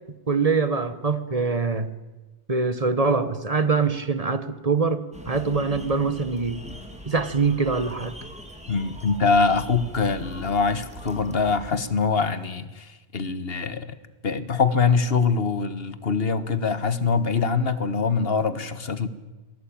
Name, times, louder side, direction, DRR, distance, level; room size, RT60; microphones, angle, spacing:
voice 1, 0.3-1.9 2.5-6.6 7.1-8.1, right 4 dB, 35° right, 1.4 m, -24 dB
sound 1, 5.1-11.7, equal, 5° right, 3.2 m, -41 dB
voice 2, 8.7-13.9 14.2-19.1, left 5 dB, 70° left, 1.7 m, -23 dB
27.5 x 19.5 x 8.9 m
omnidirectional pair, 1.0 m